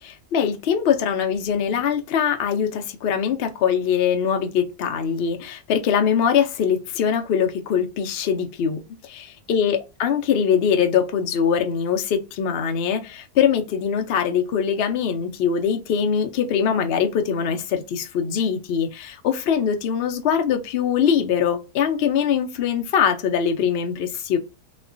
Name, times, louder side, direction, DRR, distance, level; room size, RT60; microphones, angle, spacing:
voice 1, 0.0-24.4, left 7 dB, 80° left, 0.5 m, -22 dB
3.1 x 2.1 x 2.4 m
omnidirectional pair, 1.6 m